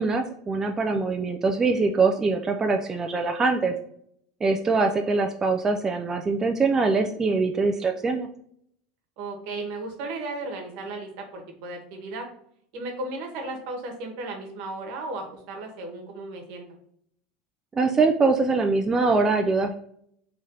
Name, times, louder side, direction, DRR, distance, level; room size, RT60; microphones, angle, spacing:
voice 1, 0.0-3.7 4.4-8.3 17.8-19.7, right 3 dB, 20° right, 4 dB, 0.3 m, -23 dB
voice 2, 9.2-12.3 12.7-16.6, right 2 dB, 65° right, 3 dB, 1.1 m, -35 dB
3.2 x 2.7 x 3.7 m, 0.68 s
supercardioid pair, 120°, 3 cm